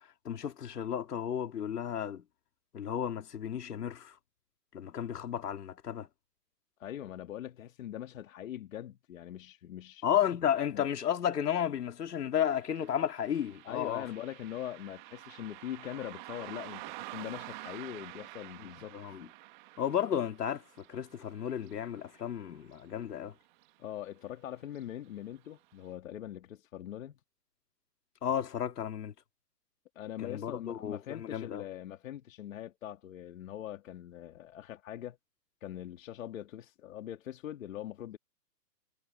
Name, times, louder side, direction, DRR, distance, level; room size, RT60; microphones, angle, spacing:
voice 1, 0.2-2.2 2.7-4.1 4.7-6.1 10.0-14.0 18.6-19.3 19.8-20.6 20.9-23.3 28.2-29.1 30.2-31.6, left 9 dB, 70° left, 2.8 m, -33 dB
voice 2, 6.8-10.0 10.7-10.9 13.6-19.0 23.8-27.2 30.0-35.2 35.6-38.2, left 11 dB, 50° left, 2.0 m, -42 dB
Car passing by, 12.5-23.3 23.6-23.7 24.7-24.8 25.3-25.4 25.9-26.0, right 20 dB, 30° right, 1.5 m, -49 dB
hypercardioid pair, 150°, 49 cm